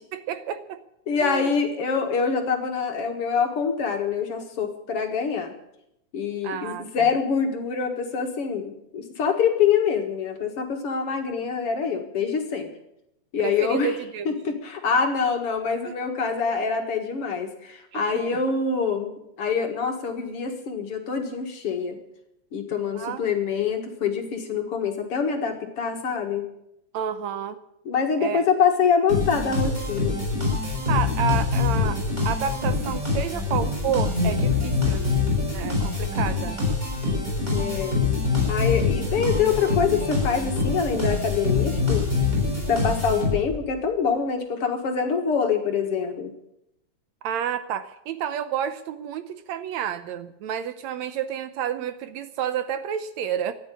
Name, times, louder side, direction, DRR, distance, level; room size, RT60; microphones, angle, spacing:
voice 1, 0.1-0.8 1.2-1.5 6.4-7.1 13.4-14.4 15.9-16.0 17.9-18.2 23.0-23.3 26.9-27.6 28.2-28.4 30.9-35.1 35.5-36.6 47.2-53.5, right 9 dB, 75° right, 12 dB, 1.9 m, -30 dB
voice 2, 1.1-5.5 6.1-12.7 13.3-13.9 14.3-19.1 19.4-22.0 22.5-26.5 27.9-30.2 37.5-38.0 38.5-42.1 42.7-46.3, left 6 dB, 55° left, 4 dB, 2.4 m, -25 dB
sound 1, 29.1-43.7, left 4 dB, 15° right, 7.2 m, -25 dB
14.0 x 10.5 x 9.9 m, 0.82 s
omnidirectional pair, 3.4 m